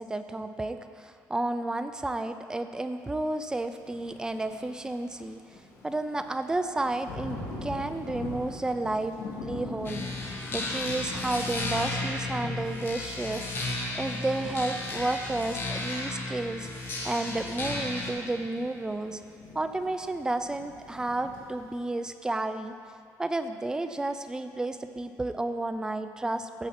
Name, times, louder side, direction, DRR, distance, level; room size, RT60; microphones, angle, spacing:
voice 1, 0.0-5.4 5.8-19.2 19.5-22.7 23.2-26.7, right 2 dB, 10° right, 8 dB, 0.4 m, -32 dB
Thunder / Rain, 3.7-21.8, left 2 dB, 80° left, 2.4 m, -44 dB
sound 1, 9.8-18.1, left 2 dB, 35° left, 1.4 m, -34 dB
15.0 x 7.3 x 4.2 m, 2.3 s
cardioid pair, 160°, 6 cm